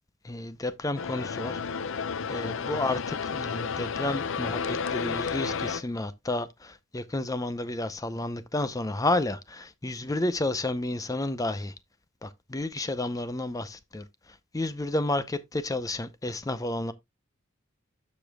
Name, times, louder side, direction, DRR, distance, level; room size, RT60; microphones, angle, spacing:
voice 1, 0.2-1.6 2.3-11.7 12.2-14.0 14.5-16.9, left 2 dB, 15° left, 0.5 m, -31 dB
sound 1, 0.9-5.8, left 5 dB, 65° left, 0.6 m, -32 dB
13.5 x 5.1 x 2.2 m
head